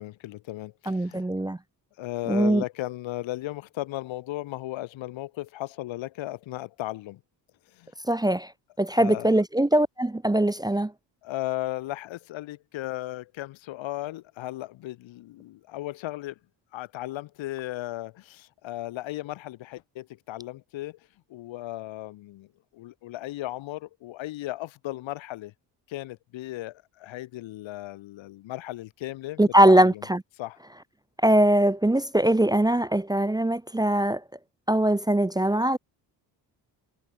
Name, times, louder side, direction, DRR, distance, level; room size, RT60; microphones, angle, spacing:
voice 1, 0.0-1.3 2.0-7.2 7.7-7.9 8.9-9.4 11.2-16.4 16.7-21.0 21.3-25.5 25.9-30.1 30.4-30.6, left 16 dB, 85° left, 2.1 m, -36 dB
voice 2, 0.9-1.6 2.3-2.6 8.1-8.5 8.8-10.9 29.4-30.2 31.2-34.2 34.7-35.8, right 1 dB, 10° right, 0.7 m, -21 dB
supercardioid pair, 65°, 45 cm